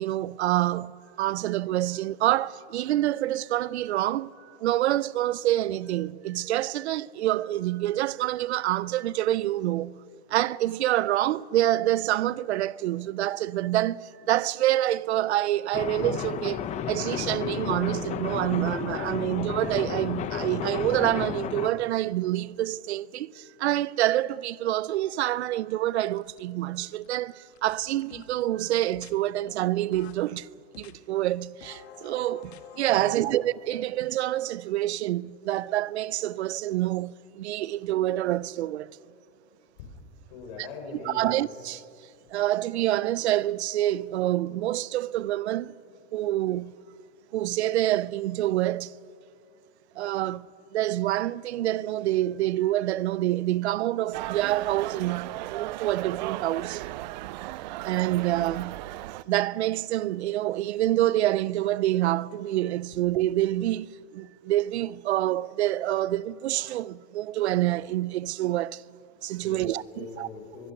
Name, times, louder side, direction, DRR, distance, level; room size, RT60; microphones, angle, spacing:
voice 1, 0.0-10.0 10.3-30.5 30.8-38.9 40.6-40.7 41.1-41.8 42.3-45.7 46.1-46.7 47.3-48.9 50.0-50.5 50.7-56.8 57.4-57.5 57.8-58.8 59.3-68.8 69.2-70.3, right 14 dB, 90° right, 0.6 m, -27 dB
sound 1, 15.7-21.7, left 8 dB, 20° left, 0.9 m, -32 dB
sound 2, 26.1-26.6 26.9-28.5 28.9-29.1 29.5-30.2 30.7-30.9 31.6-33.1, left 11 dB, 75° left, 1.7 m, -49 dB
voice 2, 32.9-33.4 40.3-41.4 69.4-70.7, left 4 dB, 60° left, 6.7 m, -42 dB
sound 3, 54.1-59.2, right 17 dB, 45° right, 0.4 m, -36 dB
23.0 x 21.0 x 6.0 m
supercardioid pair, 150°, 32 cm